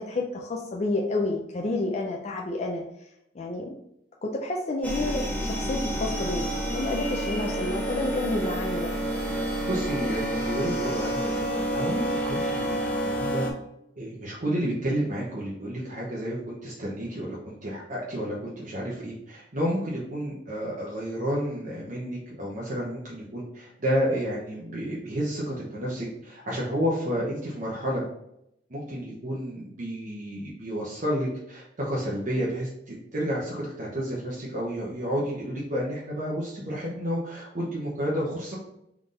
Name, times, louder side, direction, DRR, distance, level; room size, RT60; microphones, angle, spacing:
voice 1, 0.0-2.8 3.3-3.7 4.2-8.9, left 2 dB, 40° left, 0 dB, 0.5 m, -30 dB
sound 1, 4.8-13.5, right 1 dB, 10° left, 0.9 m, -29 dB
voice 2, 9.7-13.5 13.9-28.0 28.7-38.6, equal, 50° right, -5 dB, 1.0 m, -31 dB
3.9 x 3.5 x 3.8 m, 0.79 s
head